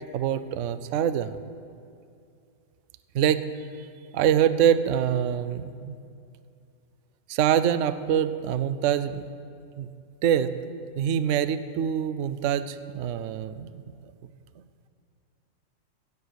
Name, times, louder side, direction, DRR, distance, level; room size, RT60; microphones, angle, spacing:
voice 1, 0.1-1.4 3.1-3.4 3.8-3.9 4.1-6.0 7.3-9.2 9.8-9.9 10.2-10.6 11.0-13.8, right 9 dB, 65° right, 13 dB, 0.9 m, -25 dB
16.5 x 7.4 x 8.0 m, 2.5 s
omnidirectional pair, 1.6 m